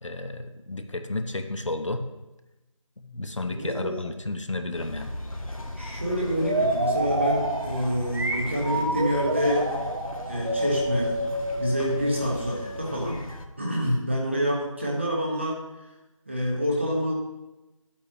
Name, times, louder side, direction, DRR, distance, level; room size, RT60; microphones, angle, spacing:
voice 1, 0.0-2.1 3.0-5.1, left 2 dB, 60° left, 6 dB, 0.9 m, -32 dB
voice 2, 3.4-4.0 5.7-9.7 10.2-11.2 11.6-13.2 13.6-15.6 16.3-17.1, equal, 20° right, -2 dB, 1.2 m, -27 dB
sound 1, 4.7-13.5, left 1 dB, 85° left, 1.4 m, -38 dB
sound 2, 6.4-13.1, right 1 dB, 40° right, 0.9 m, -28 dB
11.5 x 8.5 x 2.9 m, 1.0 s
figure-of-eight pair, 175°, 17 cm